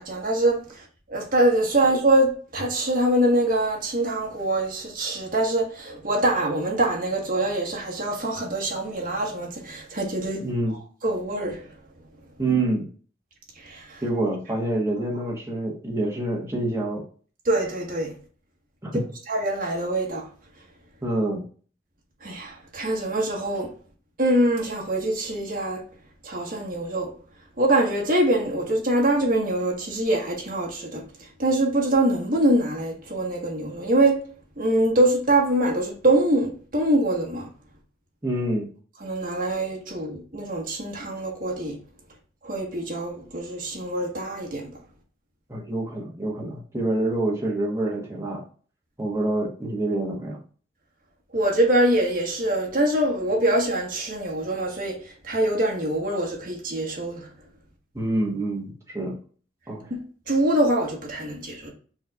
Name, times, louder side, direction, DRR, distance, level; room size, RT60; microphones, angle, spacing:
voice 1, 0.0-10.4 11.0-11.7 13.6-14.0 17.4-18.1 19.3-20.3 22.2-23.7 24.2-25.8 26.2-27.1 27.6-31.0 31.4-34.2 34.6-37.5 39.0-41.8 42.4-44.7 51.3-57.3 59.9-61.7, right 1 dB, 50° right, 1.4 m, -24 dB
voice 2, 10.4-10.8 12.4-12.9 14.0-17.0 18.8-19.0 21.0-21.4 38.2-38.7 45.5-48.4 49.0-50.4 57.9-59.2 59.7-59.9, right 2 dB, 15° right, 1.2 m, -26 dB
5.3 x 3.2 x 2.4 m
head